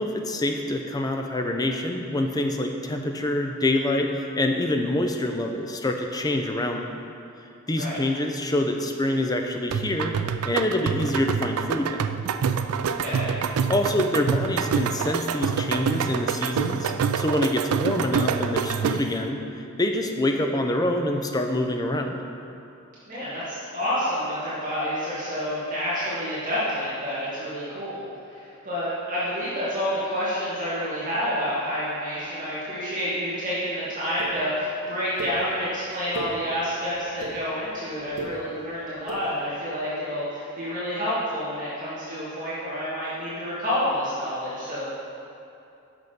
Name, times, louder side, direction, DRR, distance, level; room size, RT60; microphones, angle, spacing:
voice 1, 0.0-6.9 7.7-10.1 10.5-12.0 13.7-22.2, left 1 dB, 15° left, 3 dB, 0.5 m, -26 dB
sound 1, 9.7-19.2, right 7 dB, 85° right, 0.3 m, -26 dB
voice 2, 13.0-13.4 23.1-28.0 28.3-44.8, equal, 35° right, -11 dB, 2.0 m, -29 dB
sound 2, 34.2-34.3 35.2-35.3 35.9-36.3 36.9-37.3 38.0-38.3 39.0-39.2, right 3 dB, 70° right, 1.3 m, -34 dB
6.8 x 6.1 x 5.1 m, 2.7 s
head